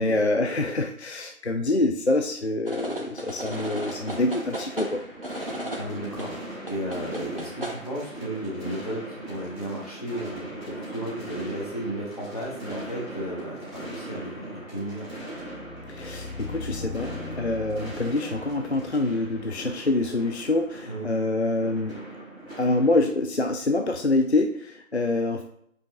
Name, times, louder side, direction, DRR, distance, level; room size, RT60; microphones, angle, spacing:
voice 1, 0.0-5.0 15.9-22.0 22.6-25.4, left 2 dB, 50° left, 5 dB, 0.5 m, -26 dB
sound 1, 2.7-7.8, right 1 dB, 40° right, 0.7 m, -36 dB
sound 2, 3.5-23.1, right 1 dB, ahead, 2.0 m, -40 dB
voice 2, 5.5-15.1 20.9-21.1, right 1 dB, 25° left, -5 dB, 1.5 m, -34 dB
sound 3, 15.3-20.2, left 3 dB, 75° left, 1.6 m, -40 dB
5.5 x 5.2 x 3.4 m, 0.70 s
figure-of-eight pair, 175°, 42 cm